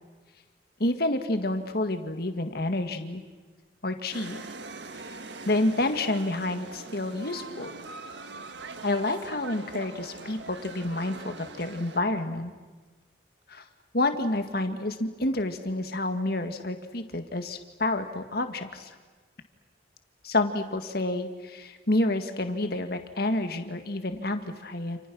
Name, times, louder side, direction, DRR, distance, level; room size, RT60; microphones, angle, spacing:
voice 1, 0.8-3.2 3.8-4.4 5.5-7.8 8.8-12.5 13.5-13.6 13.9-18.9 20.2-25.0, left 2 dB, 55° left, 7 dB, 1.9 m, -29 dB
sound 1, 4.1-12.0, right 3 dB, 65° right, 1.6 m, -42 dB
29.0 x 28.5 x 6.3 m, 1.3 s
head